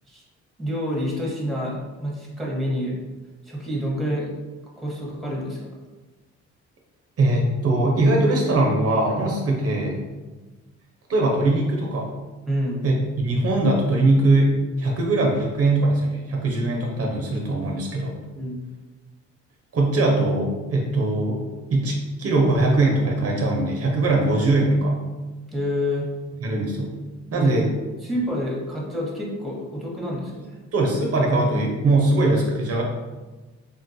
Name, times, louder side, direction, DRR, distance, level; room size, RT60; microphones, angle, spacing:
voice 1, 0.6-3.0 3.4-4.4 4.8-5.6 12.5-12.8 18.3-18.6 25.5-26.1 27.4-27.5 28.0-30.6, equal, ahead, -3 dB, 0.9 m, -28 dB
voice 2, 7.2-10.1 11.1-12.1 12.8-18.2 19.7-21.4 21.7-25.1 26.4-26.9 27.3-27.7 30.7-32.8, right 2 dB, 50° right, 0 dB, 0.6 m, -21 dB
3.4 x 2.2 x 2.6 m, 1.2 s
cardioid pair, 90°, 30 cm